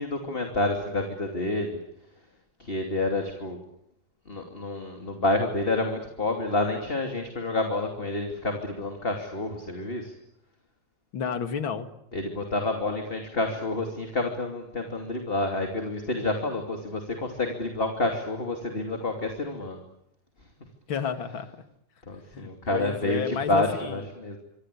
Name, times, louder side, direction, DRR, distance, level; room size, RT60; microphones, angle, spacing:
voice 1, 0.0-1.8 2.6-3.6 4.3-10.1 12.1-19.8 22.1-24.4, left 2 dB, 20° left, 4 dB, 2.7 m, -29 dB
voice 2, 11.1-11.9 20.9-21.6 22.3-24.1, left 7 dB, 45° left, 9 dB, 2.4 m, -31 dB
26.0 x 25.5 x 8.4 m, 0.79 s
omnidirectional pair, 3.6 m